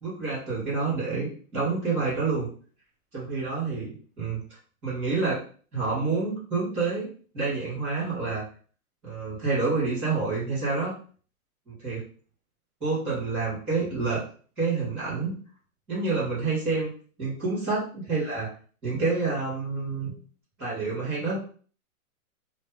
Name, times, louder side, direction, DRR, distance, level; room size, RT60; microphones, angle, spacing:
voice 1, 0.0-2.5 3.1-4.4 4.8-5.4 5.7-7.1 7.3-8.4 9.0-10.9 11.7-12.0 12.8-14.3 14.6-15.4 15.9-16.9 17.2-18.5 18.8-20.1 20.6-21.4, right 4 dB, 5° right, -18 dB, 0.8 m, -28 dB
2.7 x 2.5 x 3.5 m, 0.43 s
hypercardioid pair, 175°, 44 cm